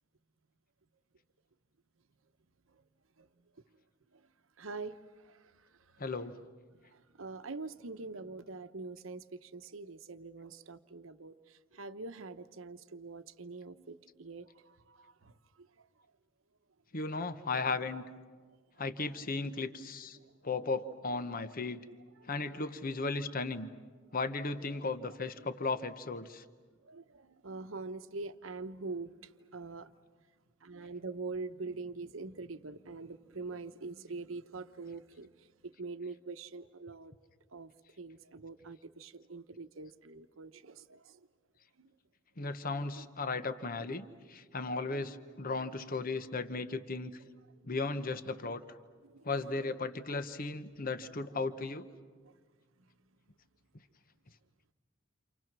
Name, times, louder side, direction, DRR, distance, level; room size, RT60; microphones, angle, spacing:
voice 1, 4.6-5.0 5.2-5.5 5.9-6.2 6.9-15.3 20.2-20.3 22.3-22.6 26.8-29.9 30.6-35.3 35.6-37.1 37.5-37.7 38.0-41.2 41.8-41.9 49.0-49.3 52.2-52.3, right 3 dB, 75° right, 10 dB, 1.0 m, -44 dB
voice 2, 6.0-6.3 16.9-18.0 18.8-20.2 20.4-21.8 22.3-23.7 24.1-26.4 42.4-47.1 47.7-48.6 49.2-51.9, left 3 dB, 45° left, 10 dB, 1.0 m, -36 dB
29.5 x 27.5 x 6.1 m, 1.5 s
head